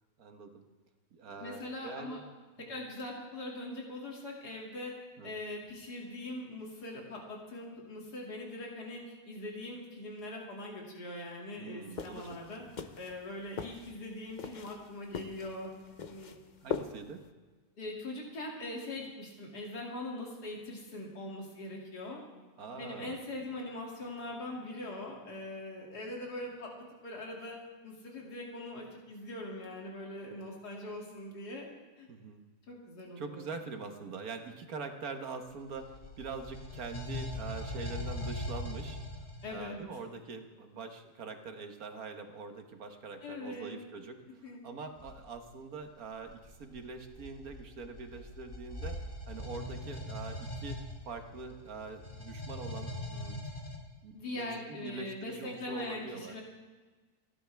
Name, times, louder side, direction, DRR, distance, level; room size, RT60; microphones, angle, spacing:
voice 1, 0.2-0.6 1.1-2.2 2.6-2.7 5.2-5.4 11.6-12.4 16.6-17.2 22.6-23.2 32.1-32.4 33.2-39.0 39.5-49.0 49.3-50.8 51.1-53.4 54.0-56.3, right 4 dB, 60° right, 5 dB, 1.7 m, -44 dB
voice 2, 1.4-2.2 2.7-4.9 5.2-12.6 13.0-15.7 16.0-16.3 17.8-22.2 22.7-26.7 27.0-27.6 27.8-31.7 32.0-32.1 32.7-33.5 39.4-39.8 43.2-43.8 44.4-44.6 54.1-56.4, left 1 dB, 70° left, -2 dB, 3.1 m, -42 dB
sound 1, 11.9-17.3, left 6 dB, 50° left, 0.5 m, -42 dB
sound 2, 35.5-39.6 45.0-45.2 46.0-53.8, left 1 dB, 30° left, 2.3 m, -41 dB
30.0 x 11.5 x 3.5 m, 1.3 s
omnidirectional pair, 1.7 m